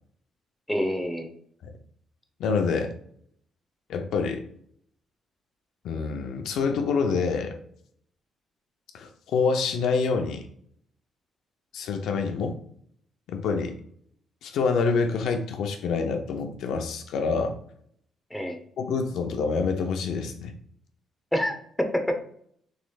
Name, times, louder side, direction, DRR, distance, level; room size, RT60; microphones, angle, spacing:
voice 1, 0.7-1.3 18.3-18.6 21.3-22.2, equal, 5° left, 4 dB, 0.8 m, -27 dB
voice 2, 2.4-2.9 3.9-4.4 5.8-7.6 8.9-10.4 11.7-12.6 13.3-13.8 14.4-17.6 18.8-20.5, left 5 dB, 80° left, 5 dB, 0.5 m, -26 dB
6.3 x 3.2 x 2.3 m, 0.65 s
cardioid pair, 90°, 0 cm